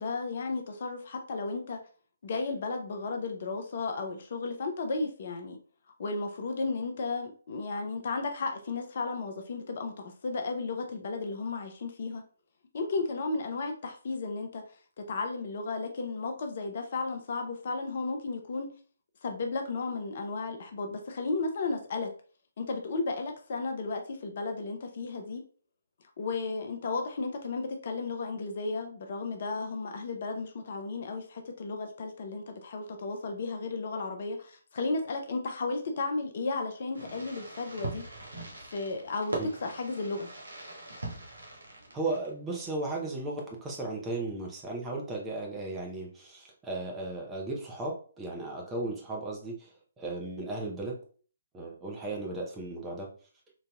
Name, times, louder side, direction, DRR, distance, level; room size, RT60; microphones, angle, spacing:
voice 1, 0.0-1.8 2.2-5.6 6.0-12.2 12.7-14.6 15.1-18.7 19.2-22.1 22.6-25.4 26.2-38.0 38.7-40.3, left 3 dB, 45° left, 5 dB, 0.5 m, -34 dB
Fireworks, 36.9-42.5, right 2 dB, 75° right, 1.1 m, -41 dB
voice 2, 41.9-49.7 50.0-51.0 51.5-53.1, right 2 dB, 10° right, -2 dB, 0.8 m, -35 dB
4.0 x 2.7 x 2.2 m, 0.42 s
figure-of-eight pair, 135°, 0 cm